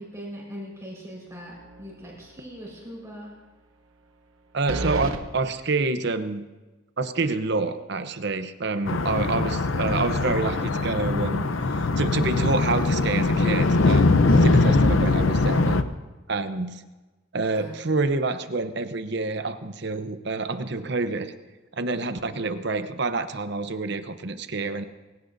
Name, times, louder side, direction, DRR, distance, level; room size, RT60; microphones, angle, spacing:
voice 1, 0.0-3.3 17.4-17.8, equal, 15° right, -5 dB, 4.9 m, -40 dB
sound 1, 1.6-2.0 2.4-2.5 4.7-5.2, right 2 dB, 90° right, 1.1 m, -30 dB
voice 2, 4.5-6.4 7.0-15.8 16.3-16.8 17.3-21.3 21.7-24.8, right 3 dB, 55° right, 9 dB, 0.9 m, -27 dB
sound 2, 8.8-15.8, left 3 dB, 75° left, 0.7 m, -21 dB
23.0 x 16.5 x 2.7 m, 1.2 s
head